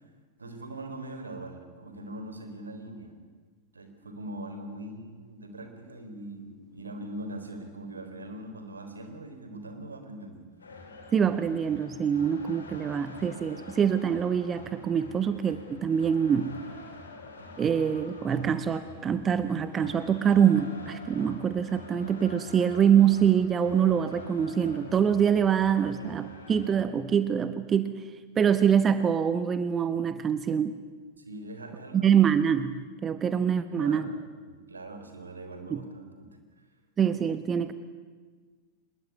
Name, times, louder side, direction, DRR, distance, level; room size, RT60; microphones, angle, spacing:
voice 1, 0.4-3.1 3.7-10.4 25.8-26.0 31.2-32.2 33.8-36.4, right 1 dB, 75° right, 7 dB, 3.9 m, -41 dB
sound 1, 10.6-26.8, left 2 dB, 70° left, 4.4 m, -47 dB
voice 2, 11.1-16.5 17.6-28.0 28.4-30.7 31.9-34.0 35.7-35.8 37.0-37.7, right 8 dB, 25° right, 12 dB, 1.2 m, -25 dB
24.0 x 21.0 x 9.6 m, 1.5 s
figure-of-eight pair, 90°, 0 cm